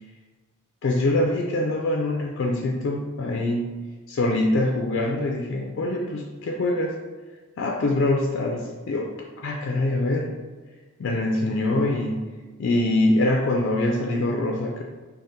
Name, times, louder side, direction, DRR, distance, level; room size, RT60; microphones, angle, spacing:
voice 1, 0.8-3.7 4.1-6.9 7.6-9.1 9.4-10.3 11.0-12.2 12.6-14.8, left 2 dB, 60° left, 0 dB, 0.3 m, -24 dB
3.5 x 2.0 x 4.0 m, 1.4 s
head